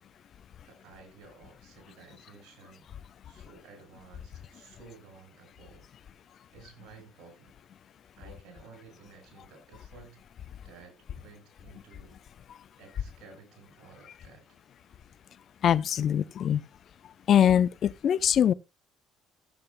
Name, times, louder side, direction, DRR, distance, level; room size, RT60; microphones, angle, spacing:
voice 1, 0.6-2.8 3.2-5.9 6.5-7.5 8.2-10.2 10.6-12.2 12.8-14.6, right 4 dB, 70° right, 6.5 m, -53 dB
voice 2, 15.6-16.6 17.3-18.5, left 9 dB, 55° left, 0.5 m, -22 dB
15.0 x 8.5 x 2.2 m
supercardioid pair, 70°, 0 cm